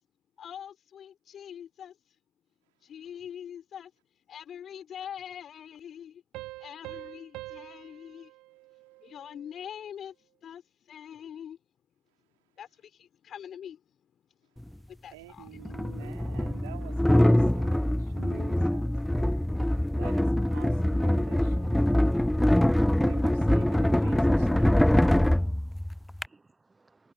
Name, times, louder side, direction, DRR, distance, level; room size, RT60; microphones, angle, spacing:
voice 1, 0.4-2.0 2.8-3.9 4.3-6.2 6.6-8.3 9.0-10.2 10.4-11.6 12.6-14.2 14.6-16.6, left 9 dB, 35° left, 5.3 m, -44 dB
sound 1, 6.3-9.6, right 20 dB, 55° right, 1.1 m, -45 dB
sound 2, 14.6-14.7 15.6-26.3, left 1 dB, 5° left, 0.3 m, -24 dB
voice 2, 15.1-18.9 20.0-21.8 23.0-24.9, right 21 dB, 70° right, 3.1 m, -48 dB
voice 3, 24.9-27.1, right 3 dB, 15° right, 0.9 m, -62 dB
hypercardioid pair, 85°, 0 cm